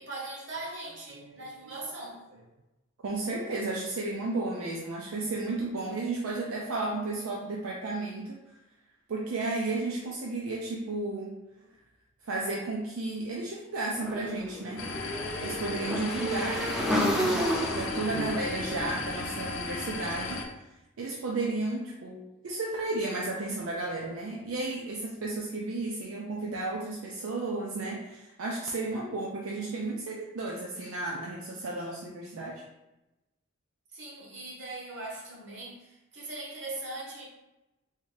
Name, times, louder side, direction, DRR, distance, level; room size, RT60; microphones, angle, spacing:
voice 1, 0.0-2.3 33.9-37.2, right 2 dB, 60° right, -3 dB, 1.0 m, -40 dB
voice 2, 1.1-1.5 3.0-8.4 9.1-11.3 12.2-14.8 15.4-20.4 21.0-32.6, right 2 dB, 80° right, -2 dB, 0.5 m, -33 dB
Motorcycle / Engine, 14.0-20.1, equal, ahead, 0.5 m, -32 dB
sound 1, 14.8-20.5, left 3 dB, 75° left, 0.5 m, -36 dB
3.6 x 2.6 x 3.2 m, 0.98 s
head